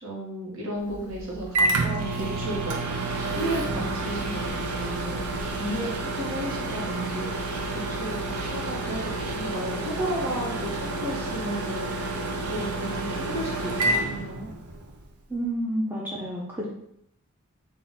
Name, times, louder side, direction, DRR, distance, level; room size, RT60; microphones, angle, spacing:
voice 1, 0.0-2.8 3.2-14.5, right 1 dB, 60° right, -3 dB, 1.3 m, -34 dB
Microwave oven, 0.9-14.9, right 2 dB, 90° right, 0.6 m, -29 dB
voice 2, 15.3-16.7, right 1 dB, 10° right, -5 dB, 0.5 m, -29 dB
3.8 x 2.5 x 3.9 m, 0.75 s
head